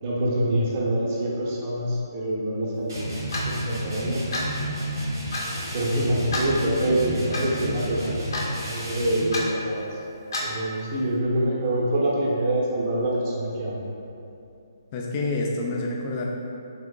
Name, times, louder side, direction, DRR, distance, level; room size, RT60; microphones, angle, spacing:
voice 1, 0.0-4.5 5.7-8.1 8.4-9.9 10.4-13.8, right 1 dB, 35° right, -5 dB, 0.6 m, -26 dB
sound 1, 2.9-9.4, equal, 75° right, 1.3 m, -31 dB
Clock, 3.3-3.5 4.3-4.5 5.3-5.5 6.3-6.5 7.3-7.4 8.3-8.5 9.3-9.5 10.3-10.5, left 2 dB, 65° left, 0.7 m, -29 dB
voice 2, 14.9-16.3, left 2 dB, 30° left, -1 dB, 0.4 m, -28 dB
3.5 x 2.8 x 2.3 m, 2.7 s
hypercardioid pair, 150°, 2 cm